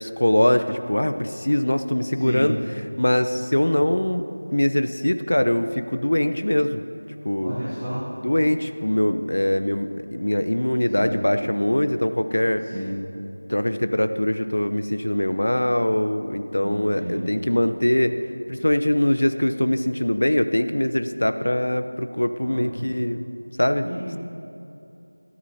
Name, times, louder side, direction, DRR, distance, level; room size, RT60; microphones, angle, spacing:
voice 1, 0.0-2.5 3.0-4.2 4.5-6.8 7.2-7.6 8.2-12.6 13.5-18.2 18.5-23.2 23.6-23.9, left 1 dB, 50° left, 9 dB, 0.7 m, -22 dB
voice 2, 2.1-2.5 7.4-8.0 11.0-11.2 12.7-12.9 16.6-17.3 22.4-22.7 23.8-24.2, equal, 10° right, -11 dB, 1.0 m, -31 dB
27.0 x 12.5 x 2.8 m, 2.7 s
figure-of-eight pair, 180°, 0 cm